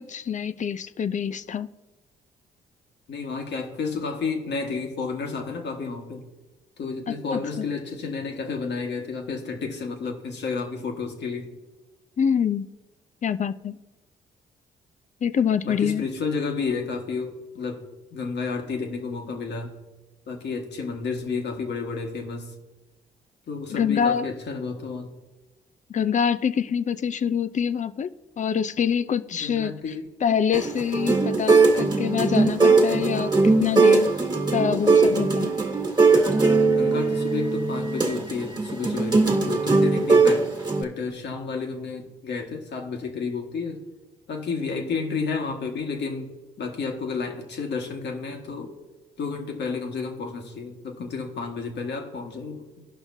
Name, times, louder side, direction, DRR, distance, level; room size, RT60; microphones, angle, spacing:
voice 1, 0.0-1.7 7.1-7.6 12.2-12.7 13.2-13.7 15.2-16.0 23.7-24.3 25.9-28.1 28.4-29.7 30.2-34.1 34.5-35.5, left 7 dB, 40° left, 15 dB, 0.5 m, -25 dB
voice 2, 3.1-6.2 6.8-11.5 15.6-17.8 18.1-19.7 20.3-22.5 23.5-25.1 29.4-30.1 36.7-40.4 40.8-43.8 44.3-46.3 46.6-48.7 49.2-52.9, left 4 dB, 60° left, 2 dB, 1.6 m, -31 dB
sound 1, 30.5-40.8, right 3 dB, 20° right, 1.6 m, -20 dB
16.5 x 5.7 x 2.7 m, 1.1 s
hypercardioid pair, 50°, 20 cm